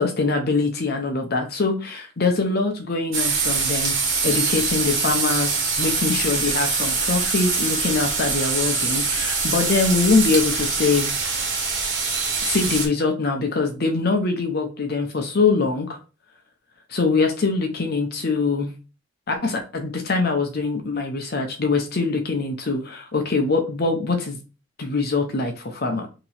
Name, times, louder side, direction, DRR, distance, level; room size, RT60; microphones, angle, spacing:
voice 1, 0.0-11.1 12.4-16.0 16.9-18.7 19.3-24.4 24.8-26.1, left 4 dB, 50° left, 4 dB, 0.7 m, -23 dB
sound 1, 3.1-12.9, right 4 dB, 70° right, 1.4 m, -24 dB
2.9 x 2.9 x 4.1 m, 0.33 s
head